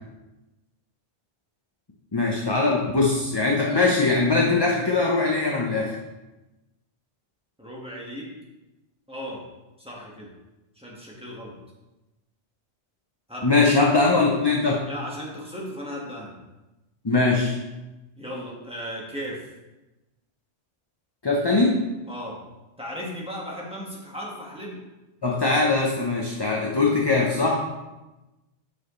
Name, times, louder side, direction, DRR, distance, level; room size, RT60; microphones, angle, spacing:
voice 1, 2.1-5.9 13.4-14.9 17.0-17.5 21.2-21.8 25.2-27.6, left 3 dB, 25° left, -2 dB, 0.7 m, -21 dB
voice 2, 7.6-8.3 9.1-9.4 9.8-10.3 10.7-11.5 13.3-13.7 14.8-16.3 18.2-19.5 22.1-22.4 22.8-24.8, equal, 5° right, -4 dB, 1.5 m, -36 dB
8.1 x 6.2 x 3.2 m, 1.0 s
omnidirectional pair, 1.2 m